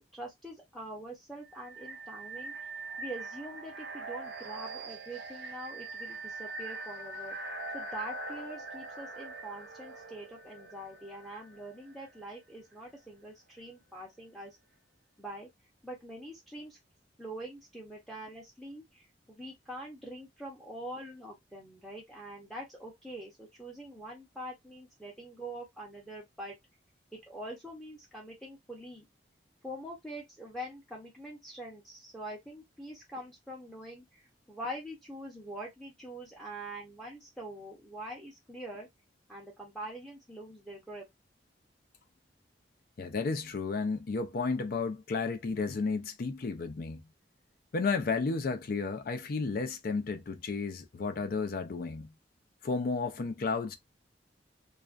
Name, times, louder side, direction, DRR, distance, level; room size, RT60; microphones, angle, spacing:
voice 1, 0.0-2.5 3.0-7.4 7.7-14.6 15.2-15.5 15.8-16.8 17.2-26.6 27.1-29.0 29.6-38.9 39.3-41.1, right 1 dB, ahead, 0.6 m, -44 dB
sound 1, 1.4-12.2, right 3 dB, 90° right, 0.7 m, -42 dB
voice 2, 43.0-47.0 47.7-52.1 52.6-53.8, left 4 dB, 55° left, 0.4 m, -32 dB
2.4 x 2.2 x 2.4 m
head